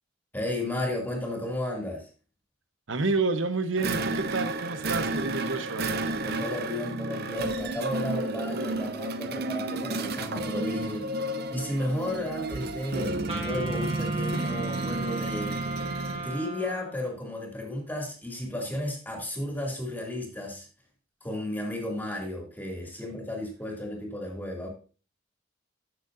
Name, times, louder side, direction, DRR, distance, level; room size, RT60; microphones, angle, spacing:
voice 1, 0.3-2.1 6.2-11.1 11.5-15.6 16.2-20.7 21.2-24.7, left 1 dB, 10° left, 2.4 m, -33 dB
voice 2, 2.9-5.9, right 3 dB, 75° right, 0.9 m, -29 dB
sound 1, 3.8-16.3, right 2 dB, 50° right, 0.6 m, -31 dB
Wind instrument woodwind instrument, 13.3-17.1, right 2 dB, 30° right, 1.9 m, -36 dB
13.0 x 6.7 x 2.6 m
head